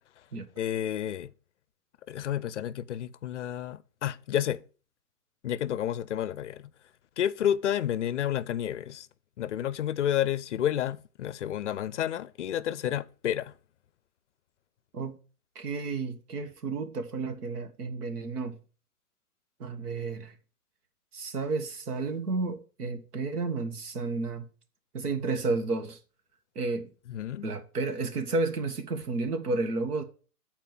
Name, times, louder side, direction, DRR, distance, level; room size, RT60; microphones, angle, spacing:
voice 1, 0.6-1.3 2.1-4.6 5.4-6.7 7.2-9.1 9.4-13.5 27.1-27.5, left 10 dB, 50° left, 0.5 m, -30 dB
voice 2, 15.6-18.6 19.6-20.3 21.1-24.5 24.9-26.0 26.6-26.9 27.4-30.0, right 3 dB, 75° right, 1.6 m, -31 dB
7.5 x 4.5 x 7.0 m
hypercardioid pair, 165°, 46 cm